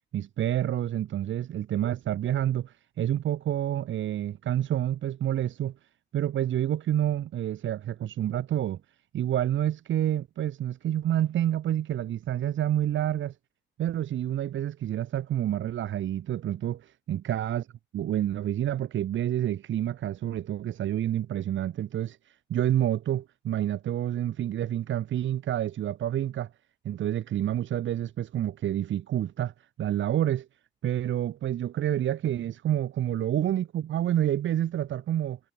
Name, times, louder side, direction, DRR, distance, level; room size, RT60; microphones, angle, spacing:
voice 1, 0.1-5.7 6.1-8.8 9.1-13.3 13.8-17.6 17.9-22.2 22.5-26.5 26.8-29.5 29.8-30.5 30.8-35.4, right 11 dB, 70° right, 6.5 m, -28 dB
cardioid pair, 90°, 20 cm